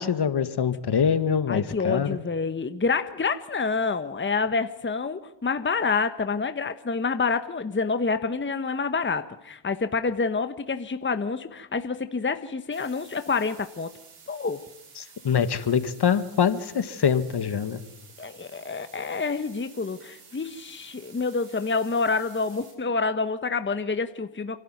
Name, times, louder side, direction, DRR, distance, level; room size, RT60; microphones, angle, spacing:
voice 1, 0.0-2.1 15.0-17.8, left 7 dB, 50° left, 11 dB, 1.9 m, -24 dB
voice 2, 1.5-13.9 14.3-14.6 18.2-24.6, left 4 dB, 25° left, 10 dB, 1.3 m, -27 dB
sound 1, 12.7-22.7, right 5 dB, 85° right, 6.5 m, -51 dB
28.5 x 12.0 x 9.4 m, 0.91 s
supercardioid pair, 60°, 50 cm